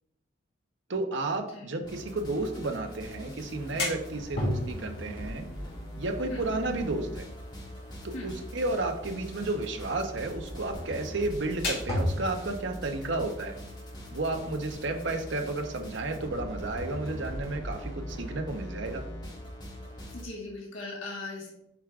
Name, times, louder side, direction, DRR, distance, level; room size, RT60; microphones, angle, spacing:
voice 1, 0.9-5.4 6.0-7.2 8.0-13.6 14.1-19.0, right 2 dB, 60° right, 5 dB, 0.7 m, -32 dB
sound 1, 1.8-20.2, equal, 20° left, 1.2 m, -41 dB
sound 2, 3.4-14.7, left 1 dB, 55° left, 2.1 m, -38 dB
voice 2, 20.1-21.5, left 2 dB, 85° left, -3 dB, 1.6 m, -38 dB
8.1 x 4.7 x 2.4 m, 0.81 s
head